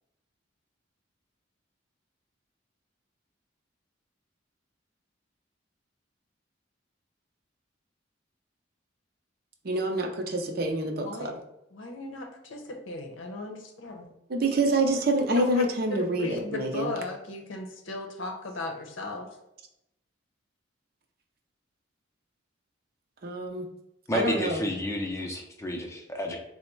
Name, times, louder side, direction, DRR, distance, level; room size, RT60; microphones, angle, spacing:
voice 1, 9.6-11.3 14.3-16.9 23.2-23.7 24.1-24.6, right 1 dB, 50° right, 3 dB, 0.6 m, -27 dB
voice 2, 11.7-14.1 15.3-15.6 15.9-19.3, left 2 dB, 85° left, 3 dB, 0.7 m, -36 dB
voice 3, 24.1-26.4, left 1 dB, 15° left, 1 dB, 0.5 m, -30 dB
4.0 x 2.1 x 4.5 m, 0.83 s
head